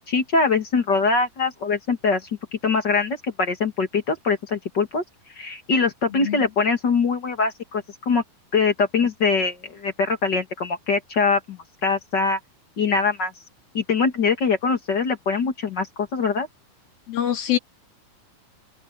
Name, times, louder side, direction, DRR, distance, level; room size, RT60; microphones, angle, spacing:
voice 1, 0.0-5.0 5.4-8.2 8.5-12.4 12.8-13.3 13.7-15.9 16.1-16.5, left 4 dB, 40° left, 1.9 m, -23 dB
voice 2, 6.1-6.5 17.1-17.6, left 11 dB, 70° left, 4.7 m, -24 dB
open air
omnidirectional pair, 4.3 m